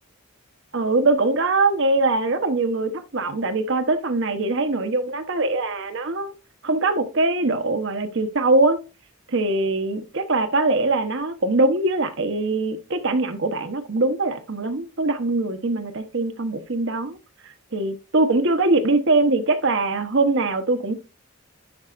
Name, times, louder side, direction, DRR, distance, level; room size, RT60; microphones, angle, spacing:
voice 1, 0.7-6.3 6.6-8.8 9.3-17.2 17.7-20.9, right 2 dB, 55° right, 1.0 m, -22 dB
10.5 x 5.5 x 2.5 m
head